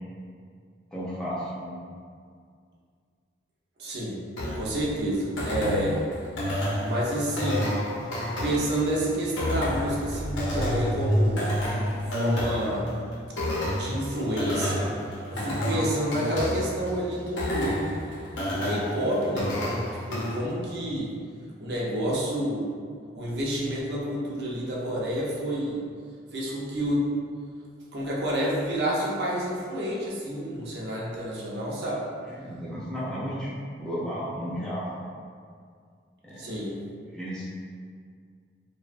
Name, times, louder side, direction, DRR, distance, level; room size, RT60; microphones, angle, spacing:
voice 1, 0.9-1.8 32.3-33.5 33.8-34.9 36.2-36.5 37.1-37.4, equal, 5° left, -9 dB, 0.4 m, -33 dB
voice 2, 3.8-4.2 4.5-6.0 6.8-7.8 8.4-11.5 12.1-12.9 13.7-14.9 15.3-17.9 18.5-19.8 20.1-21.1 21.6-22.7 23.1-25.8 26.3-27.1 27.9-32.0 36.4-36.8, right 1 dB, 60° right, -4 dB, 0.5 m, -29 dB
sound 1, 4.4-20.4, left 1 dB, 85° left, 0.5 m, -31 dB
sound 2, 5.2-12.0, equal, 40° left, 0.6 m, -30 dB
2.7 x 2.0 x 2.4 m, 2.1 s
head